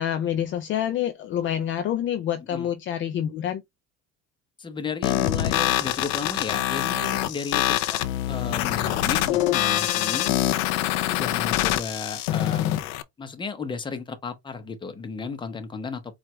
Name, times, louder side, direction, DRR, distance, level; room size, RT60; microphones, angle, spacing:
voice 1, 0.0-3.6, left 10 dB, 40° left, 0.4 m, -27 dB
voice 2, 4.6-8.0 8.3-10.4 11.1-12.8 13.2-16.1, left 4 dB, 15° left, 0.8 m, -34 dB
sound 1, 5.0-13.0, left 14 dB, 90° left, 0.5 m, -25 dB
4.6 x 2.4 x 3.2 m
cardioid pair, 135°, 31 cm